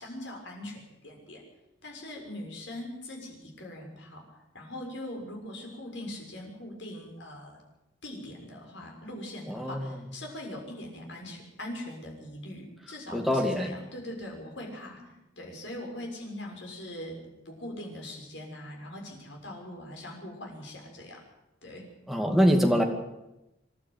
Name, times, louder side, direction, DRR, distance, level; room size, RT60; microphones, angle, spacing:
voice 1, 0.0-1.4 1.8-4.2 4.5-7.6 8.0-17.2 17.4-21.2 21.6-21.8, left 1 dB, 65° left, 0 dB, 6.7 m, -41 dB
voice 2, 9.5-9.9 13.1-13.7 22.1-22.8, equal, ahead, 2 dB, 2.2 m, -24 dB
26.5 x 12.0 x 9.3 m, 0.94 s
head